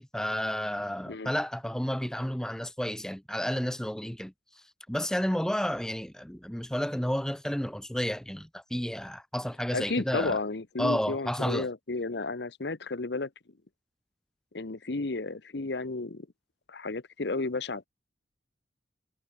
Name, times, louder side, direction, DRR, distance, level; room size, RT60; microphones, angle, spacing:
voice 1, 0.0-4.3 4.9-10.4 10.8-11.7, equal, 5° left, 0.6 m, -31 dB
voice 2, 9.7-13.3 14.5-16.3 16.7-17.9, left 3 dB, 65° left, 1.0 m, -32 dB
head